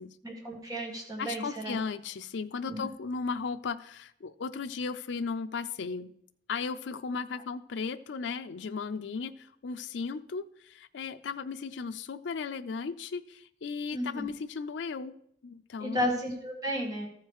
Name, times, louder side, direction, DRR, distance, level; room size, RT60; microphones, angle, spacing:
voice 1, 0.2-1.8 2.7-2.9 13.9-14.3 15.8-17.1, equal, 20° right, -1 dB, 1.8 m, -33 dB
voice 2, 1.2-6.1 6.5-15.1 15.4-16.2, left 5 dB, 75° left, 9 dB, 0.4 m, -36 dB
14.0 x 4.7 x 4.7 m, 0.71 s
head